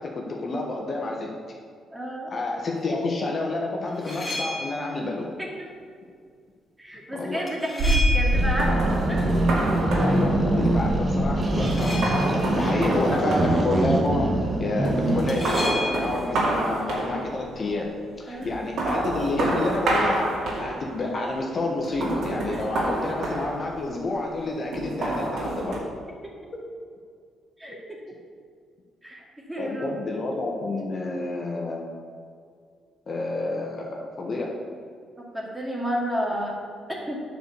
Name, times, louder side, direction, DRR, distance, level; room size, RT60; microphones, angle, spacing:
voice 1, 0.0-1.6 2.3-5.3 7.1-7.5 10.0-25.8 26.5-26.6 29.6-32.0 33.1-34.6, left 2 dB, 40° left, -1 dB, 1.5 m, -29 dB
voice 2, 1.9-2.3 5.4-5.5 6.8-9.2 12.8-13.4 18.3-18.5 22.9-23.1 27.6-27.8 29.0-30.1 35.3-36.6 36.9-37.2, equal, 10° right, -2 dB, 2.2 m, -31 dB
sound 1, 3.9-4.9 7.5-8.7 11.5-12.5 15.3-16.2, left 1 dB, 15° left, 2.4 m, -32 dB
sound 2, 7.8-14.5 14.8-17.6 18.4-21.1 21.8-24.1 24.7-25.8, right 1 dB, 70° right, 2.5 m, -27 dB
sound 3, 8.3-15.5, right 1 dB, 35° right, 1.3 m, -24 dB
9.0 x 4.9 x 6.9 m, 2.1 s
cardioid pair, 90°, 0 cm